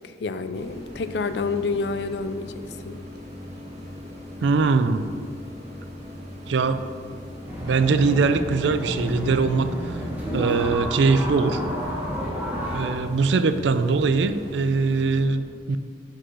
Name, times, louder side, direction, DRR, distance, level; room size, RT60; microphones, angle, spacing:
voice 1, 0.0-3.0, left 4 dB, 65° left, 11 dB, 0.4 m, -29 dB
sound 1, 0.5-15.2, left 1 dB, 40° right, 1.6 m, -40 dB
voice 2, 4.4-5.1 6.5-6.9 7.6-9.8 10.3-11.6 12.7-15.8, right 4 dB, 80° right, 11 dB, 0.4 m, -22 dB
sound 2, 7.5-12.9, right 1 dB, 10° right, 1.4 m, -30 dB
6.2 x 4.9 x 6.1 m, 2.2 s
head